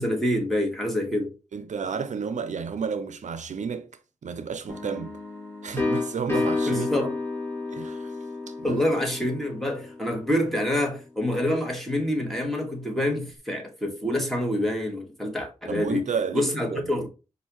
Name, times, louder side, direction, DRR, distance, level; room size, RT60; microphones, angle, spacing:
voice 1, 0.0-1.3 6.7-7.1 8.6-16.0 16.3-17.1, left 1 dB, ahead, 1.7 m, -26 dB
voice 2, 1.5-3.9 4.2-5.2 5.6-6.9 7.7-8.2 8.5-8.8 15.7-17.0, right 6 dB, 80° right, 0.5 m, -31 dB
sound 1, 4.7-10.4, left 3 dB, 20° left, 1.5 m, -31 dB
5.4 x 2.6 x 3.0 m
cardioid pair, 55°, 12 cm